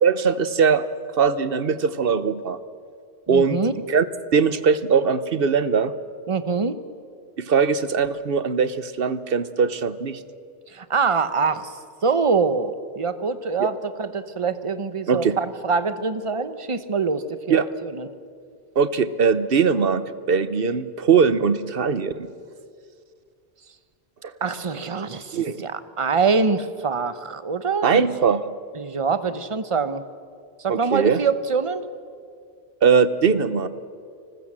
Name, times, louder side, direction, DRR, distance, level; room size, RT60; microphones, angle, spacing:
voice 1, 0.0-0.8 1.2-2.6 3.3-4.1 4.3-5.9 7.4-10.2 13.6-13.7 15.1-15.4 17.5-17.7 18.8-20.0 20.3-22.3 25.3-25.6 27.8-28.4 30.7-31.2 32.8-33.7, right 6 dB, 60° right, 14 dB, 1.2 m, -20 dB
voice 2, 3.3-3.7 6.3-6.8 10.7-11.7 12.0-18.1 24.4-27.9 28.2-28.3 28.7-30.0 30.6-31.8, right 5 dB, 30° right, 12 dB, 1.0 m, -24 dB
29.0 x 20.5 x 7.5 m, 2.2 s
omnidirectional pair, 1.1 m